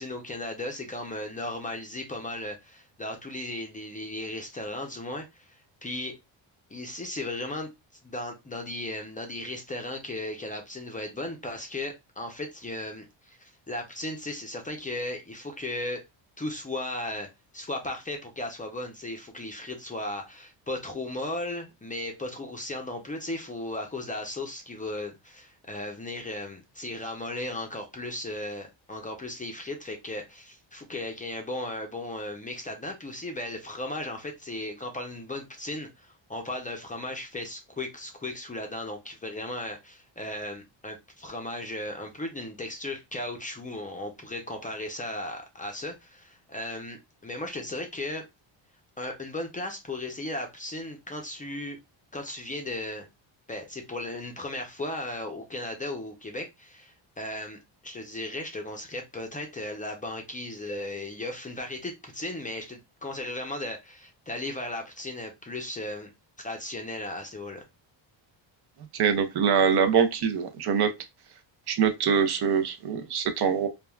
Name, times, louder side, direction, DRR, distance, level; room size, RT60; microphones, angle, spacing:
voice 1, 0.0-6.2 6.7-7.7 8.0-16.0 16.4-17.3 17.5-48.2 49.0-51.8 52.1-53.1 53.5-66.1 66.4-67.6, left 1 dB, 15° left, 0.5 m, -36 dB
voice 2, 68.9-70.9 71.7-73.7, right 7 dB, 55° right, 0.6 m, -24 dB
3.4 x 2.3 x 2.2 m
cardioid pair, 105°, 48 cm